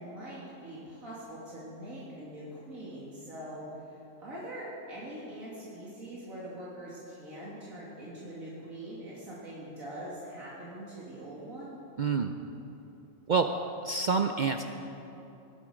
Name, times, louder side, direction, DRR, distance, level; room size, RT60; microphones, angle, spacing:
voice 1, 0.0-11.7, right 1 dB, 80° right, -8 dB, 2.9 m, -43 dB
voice 2, 12.0-12.3 13.3-13.5 13.8-14.6, right 5 dB, 65° right, 6 dB, 0.4 m, -27 dB
20.0 x 11.0 x 5.1 m, 3.0 s
omnidirectional pair, 1.4 m